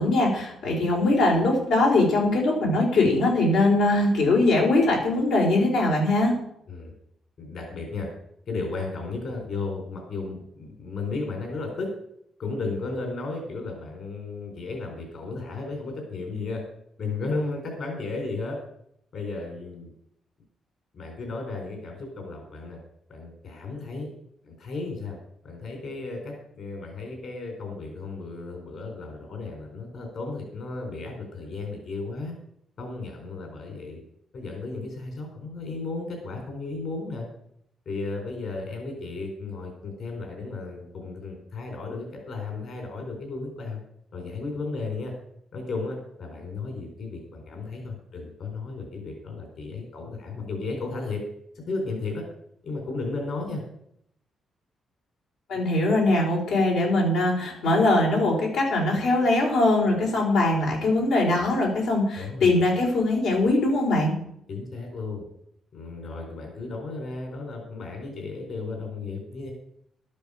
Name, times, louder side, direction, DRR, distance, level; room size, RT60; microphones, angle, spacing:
voice 1, 0.0-6.3 55.5-64.1, left 2 dB, 90° left, -1 dB, 4.8 m, -21 dB
voice 2, 7.4-8.1 8.5-11.9 12.4-16.6 17.0-18.6 19.1-19.9 20.9-22.8 23.1-24.1 24.4-25.2 25.4-32.4 32.8-34.0 34.3-37.2 37.9-43.8 44.1-45.1 45.5-51.2 51.5-52.2 52.6-53.6 62.1-62.5 64.5-65.2 65.7-69.5, left 3 dB, 60° left, 2 dB, 4.2 m, -34 dB
12.5 x 12.0 x 5.1 m, 0.72 s
cardioid pair, 120°, 0 cm